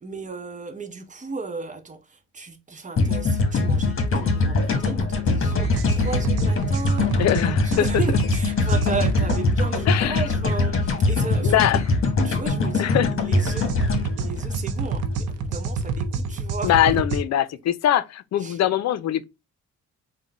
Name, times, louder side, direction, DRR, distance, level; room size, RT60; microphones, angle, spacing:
voice 1, 0.0-11.8 12.2-13.8 14.2-17.0 18.4-18.6, right 4 dB, 25° right, 0.9 m, -35 dB
sound 1, 3.0-15.2, left 3 dB, 45° left, 1.2 m, -23 dB
sound 2, 5.5-9.4 13.3-17.2, right 4 dB, 80° right, 0.7 m, -28 dB
voice 2, 7.2-7.9 9.9-10.2 11.4-11.8 12.8-13.1 16.6-19.2, left 11 dB, 60° left, 0.5 m, -22 dB
3.7 x 2.2 x 4.0 m
cardioid pair, 90°, 30 cm